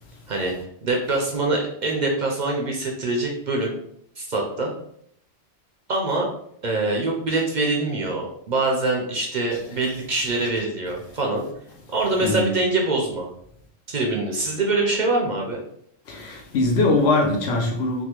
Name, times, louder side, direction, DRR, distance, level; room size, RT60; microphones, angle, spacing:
voice 1, 0.8-3.8 4.2-4.7 5.9-6.3 6.6-11.4 11.9-13.3 13.9-15.6, right 2 dB, 55° right, 0.6 m, -24 dB
voice 2, 9.5-9.8 12.2-12.5 16.1-18.0, left 2 dB, 75° left, 0.9 m, -22 dB
3.4 x 2.3 x 2.9 m
omnidirectional pair, 1.1 m